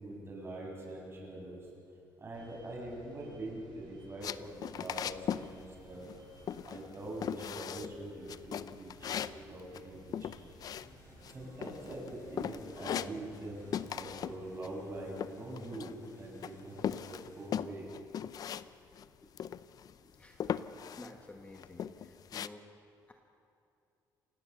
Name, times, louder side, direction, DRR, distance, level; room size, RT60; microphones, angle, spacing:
voice 1, 0.0-1.7 2.2-6.1 6.6-10.5 11.3-17.9, right 1 dB, 30° right, -1 dB, 6.9 m, -44 dB
sound 1, 2.3-14.3, right 2 dB, 75° right, 4.7 m, -59 dB
sound 2, 4.2-5.5 5.8-6.2 6.5-6.9 7.2-7.9 8.3-11.3 11.6-12.1 12.4-13.5 13.7-14.4 14.6-16.1 16.4-18.7 18.9-19.0 19.4-19.9 20.4-21.1 21.5-22.5, left 9 dB, 55° left, 0.6 m, -38 dB
sound 3, 10.8-17.6, left 2 dB, 35° left, 6.8 m, -57 dB
voice 2, 19.0-23.1, left 2 dB, 15° left, 3 dB, 1.7 m, -55 dB
29.0 x 17.0 x 6.8 m, 2.6 s
cardioid pair, 120°, 8 cm